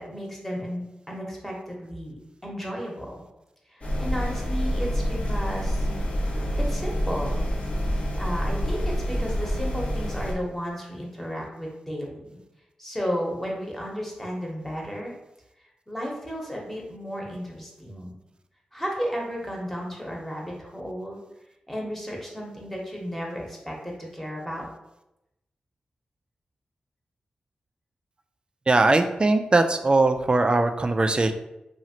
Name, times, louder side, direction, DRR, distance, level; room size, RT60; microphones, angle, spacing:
voice 1, 0.0-3.2 3.7-5.9 6.5-7.5 8.2-12.3 12.8-15.1 15.9-18.2 18.7-21.2 21.7-24.6, equal, 10° left, -2 dB, 1.0 m, -33 dB
sound 1, 3.8-10.3, equal, 50° left, 0.7 m, -27 dB
voice 2, 28.7-31.3, right 2 dB, 35° right, 7 dB, 0.3 m, -20 dB
2.8 x 2.4 x 2.8 m, 0.90 s
cardioid pair, 45°, 3 cm